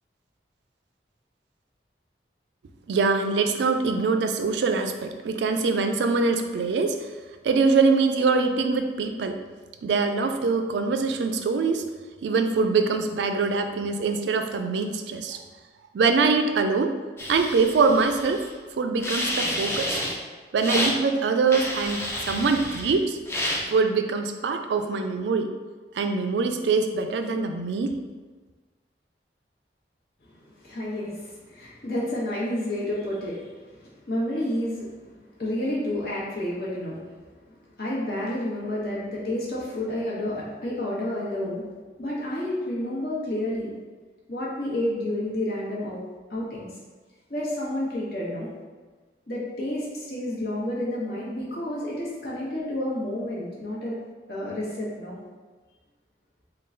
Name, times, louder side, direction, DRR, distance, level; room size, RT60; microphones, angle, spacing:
voice 1, 2.9-7.1 7.4-9.4 9.8-11.9 12.2-15.4 15.9-17.0 17.3-18.4 18.7-20.0 20.5-23.2 23.7-25.5 25.9-28.0, right 4 dB, 85° right, 6 dB, 0.3 m, -23 dB
sound 1, 17.2-18.5 19.0-20.2 20.6-21.0 21.5-23.0 23.3-23.6, left 1 dB, 15° left, 0.4 m, -29 dB
voice 2, 30.3-41.7 42.0-43.7 44.3-46.0 46.3-46.8 47.3-48.5 49.3-54.0 54.3-55.2, left 1 dB, 60° left, -6 dB, 1.1 m, -30 dB
3.7 x 2.3 x 3.8 m, 1.4 s
head